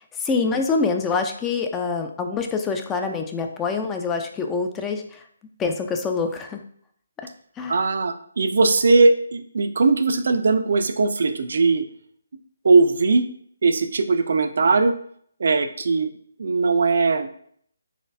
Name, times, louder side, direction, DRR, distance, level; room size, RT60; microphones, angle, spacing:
voice 1, 0.2-5.2 5.6-6.6 7.2-7.3 7.6-7.8, left 4 dB, 15° left, 4 dB, 0.3 m, -25 dB
voice 2, 7.7-11.8 12.6-13.2 13.6-14.9 15.4-16.1 16.4-17.3, right 3 dB, 65° right, 9 dB, 0.4 m, -19 dB
4.1 x 3.1 x 2.6 m, 0.62 s
figure-of-eight pair, 150°, 0 cm